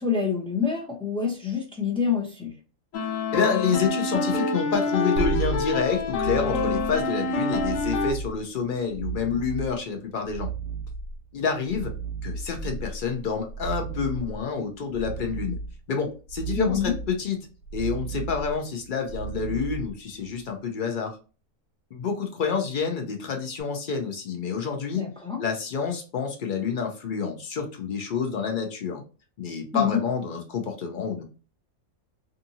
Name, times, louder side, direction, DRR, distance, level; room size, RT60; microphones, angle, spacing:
voice 1, 0.0-2.5 16.6-16.9 24.9-25.4 29.7-30.0, left 6 dB, 10° left, -1 dB, 0.3 m, -26 dB
sound 1, 2.9-8.1, left 3 dB, 75° left, 1.0 m, -27 dB
voice 2, 3.3-10.5 11.3-11.9 12.2-15.6 15.9-17.4 17.7-21.2 21.9-25.0 25.4-29.0 29.4-31.2, left 6 dB, 55° left, 4 dB, 0.6 m, -28 dB
sound 2, 5.2-20.5 23.6-23.7, right 5 dB, 70° right, 0.9 m, -34 dB
2.6 x 2.5 x 2.7 m, 0.34 s
omnidirectional pair, 1.4 m